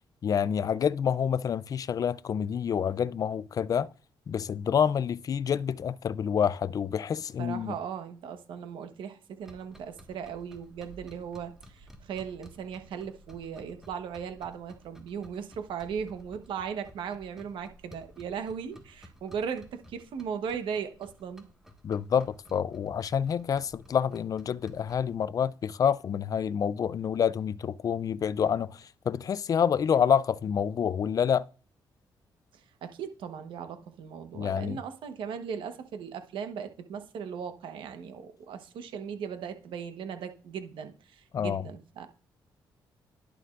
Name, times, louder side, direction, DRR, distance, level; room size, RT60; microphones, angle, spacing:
voice 1, 0.2-3.9 4.3-7.8 21.8-31.5 34.3-34.8 41.3-41.6, left 8 dB, 45° left, 0.4 m, -28 dB
voice 2, 7.4-21.5 32.8-42.1, right 7 dB, 85° right, 1.1 m, -38 dB
sound 1, 9.4-25.2, right 1 dB, 5° right, 1.5 m, -54 dB
11.0 x 6.8 x 2.5 m
cardioid pair, 105°, 8 cm